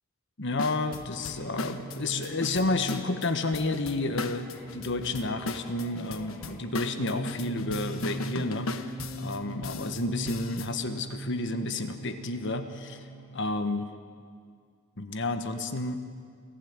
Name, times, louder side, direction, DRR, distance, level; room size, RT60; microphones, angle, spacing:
voice 1, 0.4-13.1 13.3-13.9 15.0-16.0, left 2 dB, 60° left, 9 dB, 1.4 m, -31 dB
sound 1, 0.6-10.7, left 3 dB, 80° left, 1.2 m, -38 dB
sound 2, 1.1-13.5, right 2 dB, 10° left, 4.4 m, -41 dB
28.0 x 16.0 x 9.6 m, 2.1 s
head